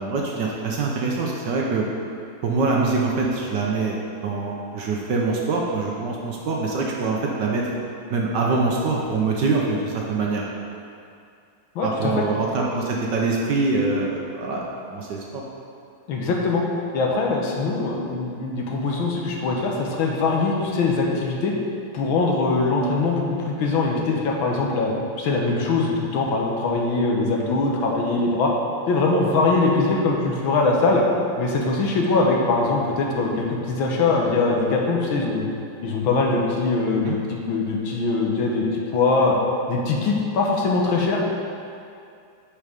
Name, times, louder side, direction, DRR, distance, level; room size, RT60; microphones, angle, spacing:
voice 1, 0.0-1.9 2.4-3.9 4.2-7.6 8.1-10.4 11.8-14.6 14.9-15.4 37.1-37.2, right 3 dB, 65° right, -2 dB, 1.2 m, -24 dB
voice 2, 11.8-12.3 16.1-16.6 16.9-21.5 21.9-24.9 25.2-28.5 28.9-31.0 31.4-35.5 35.8-39.4 39.7-41.2, left 3 dB, 70° left, -1 dB, 1.7 m, -22 dB
8.4 x 4.5 x 4.9 m, 2.4 s
omnidirectional pair, 2.3 m